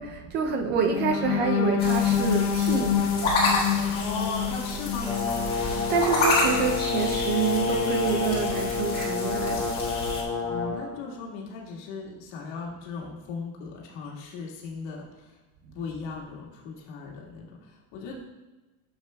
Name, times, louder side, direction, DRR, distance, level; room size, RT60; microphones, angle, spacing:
voice 1, 0.0-3.9 5.9-9.7 10.1-10.2, right 5 dB, 25° right, 5 dB, 0.4 m, -28 dB
sound 1, 0.9-6.8 7.3-7.5 7.8-8.1, left 8 dB, 75° left, 1.5 m, -27 dB
sound 2, 1.8-10.2, left 2 dB, 25° left, 1.6 m, -30 dB
voice 2, 3.9-5.1 10.5-15.3 15.7-18.2, left 4 dB, 60° left, -2 dB, 1.7 m, -37 dB
Brass instrument, 5.0-10.8, left 4 dB, 5° left, 1.1 m, -29 dB
10.0 x 7.0 x 2.2 m, 1.1 s
cardioid pair, 170°, 39 cm